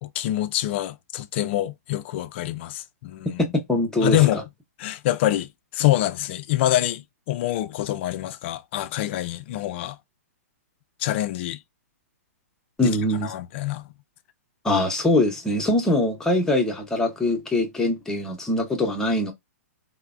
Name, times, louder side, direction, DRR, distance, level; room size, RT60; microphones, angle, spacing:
voice 1, 0.0-3.4 4.0-4.4 4.8-10.0 11.0-11.6 12.8-13.0 13.2-13.8, left 14 dB, 45° left, 0.4 m, -25 dB
voice 2, 3.7-4.2 12.8-13.3 14.6-19.3, left 1 dB, 5° left, 0.7 m, -22 dB
3.2 x 2.0 x 2.4 m
hypercardioid pair, 140°, 8 cm